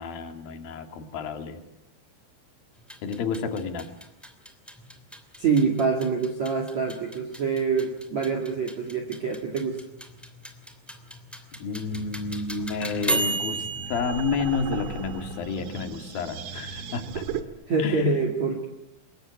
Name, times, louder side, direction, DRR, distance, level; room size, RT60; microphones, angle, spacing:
voice 1, 0.0-1.6 3.0-3.9 11.6-17.2 17.8-18.1, left 5 dB, 55° left, 6 dB, 3.6 m, -30 dB
sound 1, 2.8-15.5, right 2 dB, ahead, 0.6 m, -35 dB
voice 2, 5.4-9.8 17.7-18.7, right 4 dB, 45° right, 4 dB, 2.7 m, -25 dB
sound 2, 11.9-17.4, right 6 dB, 60° right, 2.2 m, -37 dB
27.0 x 22.5 x 9.4 m, 0.88 s
omnidirectional pair, 5.9 m